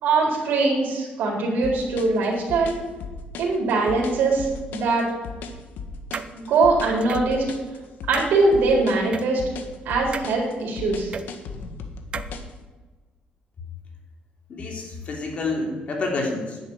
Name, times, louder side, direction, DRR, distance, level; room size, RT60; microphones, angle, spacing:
voice 1, 0.0-2.7 3.4-5.0 6.3-7.4 8.1-9.4 9.8-11.1, right 3 dB, 80° right, -3 dB, 4.3 m, -22 dB
sound 1, 1.6-12.5, left 4 dB, 75° left, 1.7 m, -36 dB
sound 2, 6.1-6.3 7.0-7.3 8.1-8.3 9.1-9.3 10.1-10.3 11.1-11.2 12.1-12.3, right 6 dB, 35° right, 0.7 m, -31 dB
voice 2, 14.5-16.6, left 3 dB, 45° left, 0 dB, 3.3 m, -28 dB
10.5 x 8.2 x 9.9 m, 1.3 s
cardioid pair, 155°, 3 cm